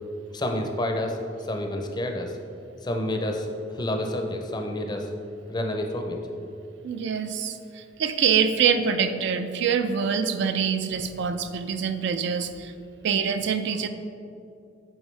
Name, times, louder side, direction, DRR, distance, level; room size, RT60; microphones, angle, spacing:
voice 1, 0.3-2.4 2.8-5.1 5.5-6.2, left 1 dB, 20° left, 3 dB, 0.5 m, -29 dB
voice 2, 6.8-12.7 13.0-13.9, right 7 dB, 65° right, 9 dB, 0.3 m, -25 dB
8.4 x 3.5 x 3.2 m, 2.5 s
head